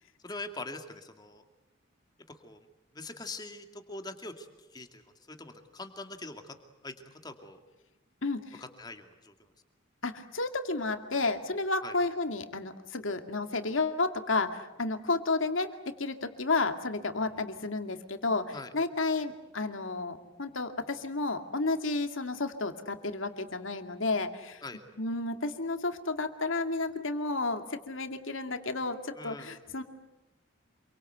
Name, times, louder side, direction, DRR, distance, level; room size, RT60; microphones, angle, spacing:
voice 1, 0.2-1.4 2.3-2.7 2.9-5.0 5.3-6.6 6.8-7.6 8.6-9.5 11.8-12.0 18.5-18.7 24.6-24.8 29.1-29.5, left 2 dB, 20° left, 6 dB, 2.3 m, -43 dB
voice 2, 8.2-8.6 10.0-24.6 25.0-29.8, left 3 dB, 70° left, 7 dB, 2.4 m, -32 dB
27.5 x 24.0 x 8.1 m, 1.0 s
head